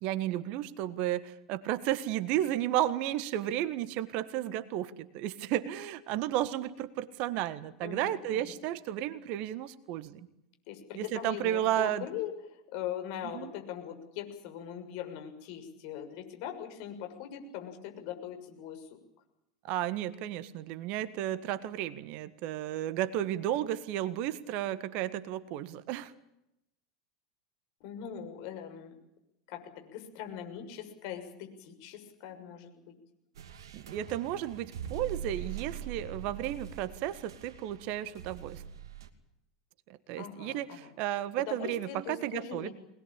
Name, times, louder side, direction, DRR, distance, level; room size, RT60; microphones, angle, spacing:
voice 1, 0.0-10.3 10.9-12.1 13.3-13.5 19.6-26.1 33.7-38.6 40.1-42.7, right 12 dB, 50° right, 14 dB, 1.6 m, -33 dB
voice 2, 7.8-8.6 10.7-12.3 12.7-18.9 27.8-28.9 29.5-32.9 40.2-40.9 41.4-42.7, left 10 dB, 55° left, 5 dB, 6.6 m, -41 dB
sound 1, 33.3-39.1, right 8 dB, 70° right, 2.6 m, -43 dB
24.0 x 20.5 x 8.9 m, 0.84 s
figure-of-eight pair, 85°, 3 cm